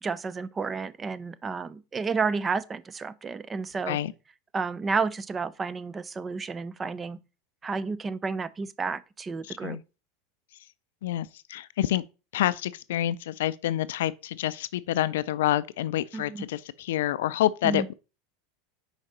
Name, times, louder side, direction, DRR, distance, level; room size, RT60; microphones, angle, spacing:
voice 1, 0.0-4.0 4.5-7.2 7.6-9.8 16.1-16.4 17.6-17.9, right 4 dB, 20° right, 0.5 m, -31 dB
voice 2, 9.4-9.8 11.0-12.0 12.3-17.9, left 13 dB, 75° left, 0.4 m, -28 dB
5.0 x 4.9 x 4.2 m
hypercardioid pair, 100°, 0 cm